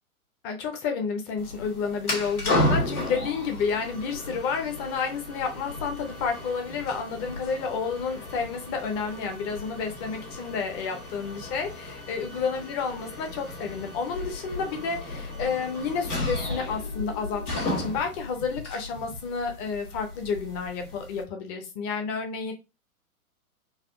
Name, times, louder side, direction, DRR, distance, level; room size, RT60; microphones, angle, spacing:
voice 1, 0.4-22.5, left 5 dB, 20° left, 4 dB, 0.7 m, -30 dB
sound 1, 1.4-21.2, left 1 dB, 85° left, 1.5 m, -34 dB
4.1 x 2.5 x 2.5 m, 0.27 s
figure-of-eight pair, 115°, 43 cm